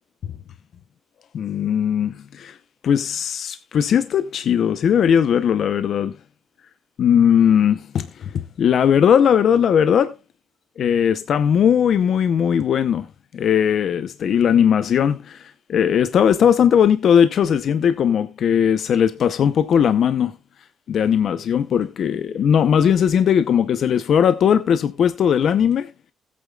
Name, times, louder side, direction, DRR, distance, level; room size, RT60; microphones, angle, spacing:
voice 1, 1.3-2.6 2.8-6.2 7.0-10.1 10.8-13.1 13.3-20.4 20.9-25.9, left 8 dB, 65° left, 0.7 m, -18 dB
16.0 x 8.6 x 2.3 m
cardioid pair, 90°, 0 cm